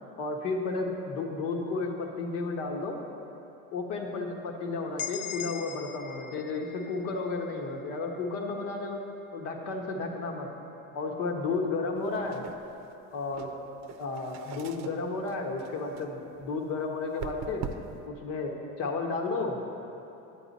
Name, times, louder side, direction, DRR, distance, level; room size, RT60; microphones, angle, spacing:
voice 1, 0.2-3.0 3.7-9.0 9.3-10.5 10.9-12.4 13.1-13.5 14.0-17.7 18.0-19.6, left 3 dB, 70° left, 2 dB, 1.3 m, -32 dB
sound 1, 5.0-8.8, left 9 dB, 35° left, 0.4 m, -42 dB
sound 2, 12.0-18.1, right 7 dB, 50° right, 0.6 m, -44 dB
9.8 x 8.3 x 4.1 m, 2.9 s
cardioid pair, 125°, 34 cm